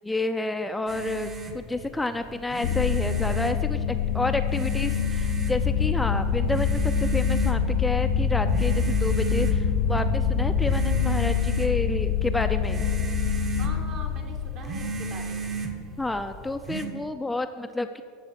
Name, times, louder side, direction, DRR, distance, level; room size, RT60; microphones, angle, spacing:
voice 1, 0.0-12.9 16.0-18.0, left 2 dB, 10° left, 7 dB, 0.5 m, -30 dB
sound 1, 0.9-16.9, right 4 dB, 35° right, 1.2 m, -36 dB
sound 2, 2.6-15.5, left 9 dB, 70° left, 0.6 m, -26 dB
sound 3, 5.6-11.4, left 1 dB, 85° right, 2.3 m, -30 dB
voice 2, 13.6-15.5, right 3 dB, 50° right, 3 dB, 1.8 m, -42 dB
13.0 x 4.9 x 6.4 m, 2.4 s
hypercardioid pair, 85°, 0 cm